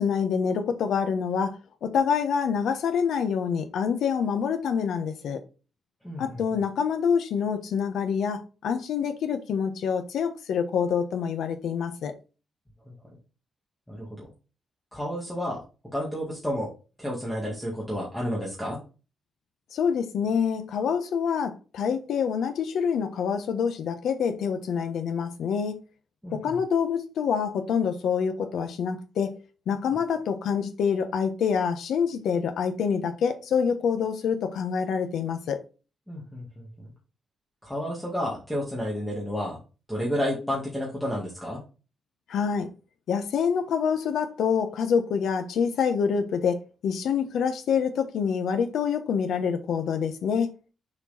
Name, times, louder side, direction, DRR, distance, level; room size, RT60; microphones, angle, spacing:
voice 1, 0.0-1.6 1.8-5.4 6.2-12.1 19.7-25.8 26.3-29.3 29.7-35.6 42.3-42.7 43.1-50.5, left 6 dB, 80° left, 1.2 m, -26 dB
voice 2, 6.0-6.4 13.9-14.1 14.9-15.6 15.9-16.7 17.0-18.8 26.2-26.6 36.1-36.9 37.6-39.6 39.9-41.6, equal, 5° left, 2.0 m, -31 dB
6.6 x 4.6 x 4.2 m
wide cardioid pair, 155°, 0 cm